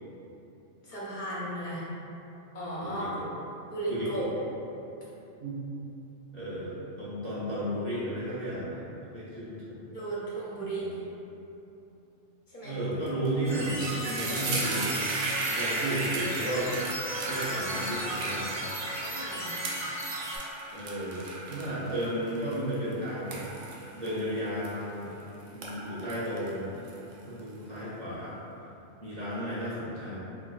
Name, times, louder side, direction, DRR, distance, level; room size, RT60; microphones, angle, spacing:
voice 1, 0.8-1.9 2.5-3.1 3.7-4.3 9.9-11.0 12.5-12.8 14.2-14.6 15.5-15.7 19.1-19.6, right 2 dB, 50° left, -7 dB, 0.7 m, -36 dB
voice 2, 2.8-3.3 3.9-4.3 5.4-5.6 6.3-9.8 10.8-11.0 12.6-15.0 15.5-16.9 17.2-18.5 20.7-23.4 23.9-25.1 25.5-26.7 27.1-28.3 29.0-30.2, right 1 dB, 35° right, -11 dB, 1.2 m, -33 dB
sound 1, 13.1-13.3 13.6-25.1 25.5-27.4, right 2 dB, 75° right, 0.9 m, -36 dB
sound 2, 13.4-20.4, right 1 dB, 60° right, 1.8 m, -36 dB
3.8 x 3.7 x 2.3 m, 3.0 s
omnidirectional pair, 1.3 m